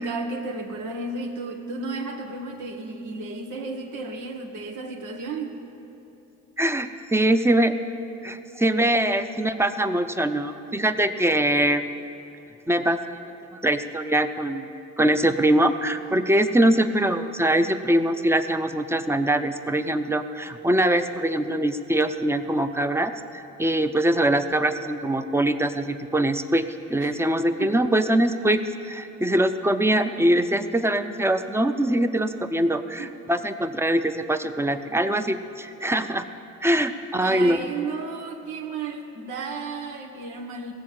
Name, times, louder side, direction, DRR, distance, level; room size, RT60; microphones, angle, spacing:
voice 1, 0.0-5.6 27.0-27.2 27.6-27.7 33.0-33.1 36.9-40.7, right 3 dB, 85° right, 2 dB, 1.6 m, -33 dB
voice 2, 6.6-7.8 8.2-11.9 12.7-14.7 15.0-36.3 36.6-37.6, right 1 dB, 10° right, 9 dB, 0.6 m, -23 dB
16.5 x 7.5 x 7.6 m, 2.9 s
cardioid pair, 90°, 30 cm